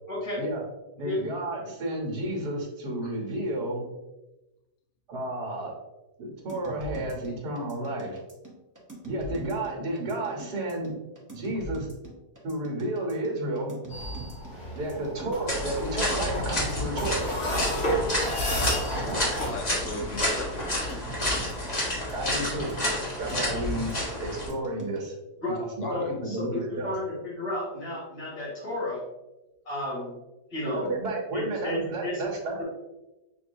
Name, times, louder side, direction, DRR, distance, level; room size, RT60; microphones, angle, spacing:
voice 1, 0.1-0.4 1.0-1.2 1.6-1.7 25.4-25.6 25.9-29.0 29.7-30.1 30.5-30.9 31.3-32.2 32.6-32.7, left 1 dB, 65° left, -8 dB, 2.3 m, -32 dB
voice 2, 1.0-3.8 5.1-5.7 6.2-8.2 9.0-10.9 11.3-11.9 12.4-13.8 14.7-17.3 22.1-22.7 23.2-23.9 24.2-25.1 25.6-26.9 30.7-32.6, right 1 dB, 80° right, -1 dB, 1.8 m, -32 dB
sound 1, 6.5-25.0, right 1 dB, 20° right, 0.5 m, -42 dB
sound 2, 13.9-19.5, equal, 45° left, 1.7 m, -32 dB
sound 3, 15.5-24.5, left 1 dB, 25° left, 1.2 m, -30 dB
voice 3, 18.9-20.6 25.8-26.1, left 2 dB, 80° left, 4 dB, 0.5 m, -37 dB
6.7 x 2.7 x 2.6 m, 1.0 s
omnidirectional pair, 1.7 m